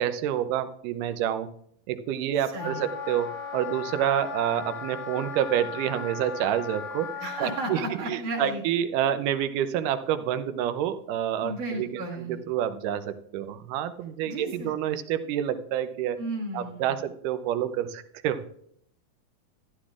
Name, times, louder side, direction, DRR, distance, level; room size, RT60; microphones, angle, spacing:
voice 1, 0.0-1.5 1.9-16.2 16.5-18.5, right 10 dB, 90° right, 11 dB, 2.2 m, -28 dB
voice 2, 2.5-2.9 7.2-8.6 11.4-12.5 14.2-14.7 16.2-17.0, right 2 dB, 75° right, -6 dB, 3.2 m, -34 dB
Wind instrument woodwind instrument, 2.6-7.8, left 6 dB, 75° left, 3.2 m, -37 dB
13.5 x 11.5 x 2.4 m, 0.69 s
omnidirectional pair, 3.6 m